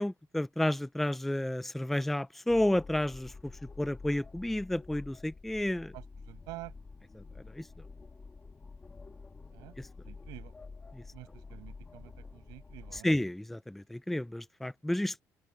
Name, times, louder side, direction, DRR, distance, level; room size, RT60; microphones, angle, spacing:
voice 1, 0.0-3.5 3.8-5.9 7.1-7.2 7.5-7.6 9.8-9.9 10.9-11.0 12.9-15.2, left 1 dB, 5° left, 0.5 m, -31 dB
sound 1, 2.5-13.0, left 4 dB, 20° left, 2.7 m, -49 dB
voice 2, 5.9-6.7 9.5-9.7 10.0-10.5 11.1-13.1, right 20 dB, 90° right, 6.8 m, -48 dB
open air
cardioid pair, 150°, 7 cm